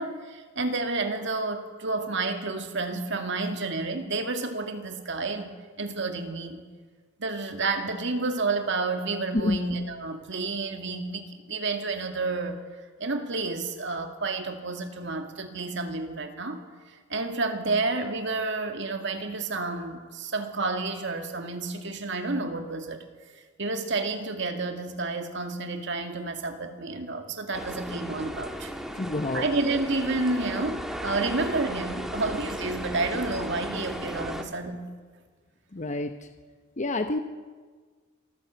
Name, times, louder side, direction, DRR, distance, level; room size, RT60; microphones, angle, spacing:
voice 1, 0.0-6.6 7.2-12.6 13.0-16.6 16.9-23.0 23.6-28.7 29.3-34.9, right 3 dB, 60° right, 5 dB, 2.2 m, -30 dB
sound 1, 27.5-34.4, equal, ahead, 1.6 m, -35 dB
voice 2, 29.0-29.4 35.7-36.1 36.8-37.2, left 2 dB, 35° left, 7 dB, 0.8 m, -27 dB
26.5 x 14.5 x 8.1 m, 1.5 s
head